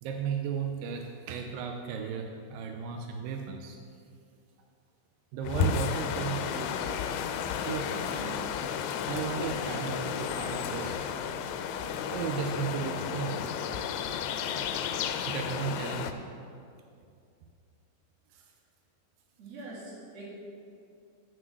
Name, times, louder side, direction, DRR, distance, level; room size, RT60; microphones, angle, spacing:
voice 1, 0.0-3.8 5.3-6.7 7.6-8.5 9.1-11.0 12.1-13.4 15.2-16.3 18.3-18.4, right 6 dB, 85° right, 3 dB, 2.3 m, -35 dB
sound 1, 5.4-16.1, left 7 dB, 90° left, 2.3 m, -32 dB
voice 2, 19.4-20.3, right 2 dB, 50° right, -5 dB, 3.1 m, -43 dB
9.2 x 6.3 x 6.5 m, 2.4 s
omnidirectional pair, 4.0 m